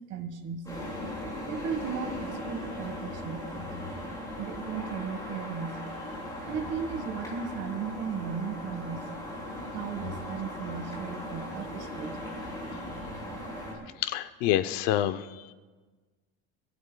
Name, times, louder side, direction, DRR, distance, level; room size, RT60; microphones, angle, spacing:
voice 1, 0.1-0.6 1.5-3.5 4.4-5.8 6.5-9.1 9.7-12.3, right 6 dB, 40° right, 7 dB, 1.5 m, -36 dB
sound 1, 0.6-13.7, left 1 dB, 10° left, 5.1 m, -38 dB
voice 2, 14.0-15.5, left 12 dB, 55° left, 11 dB, 0.7 m, -28 dB
28.5 x 15.5 x 2.3 m, 1.3 s
cardioid pair, 175°, 38 cm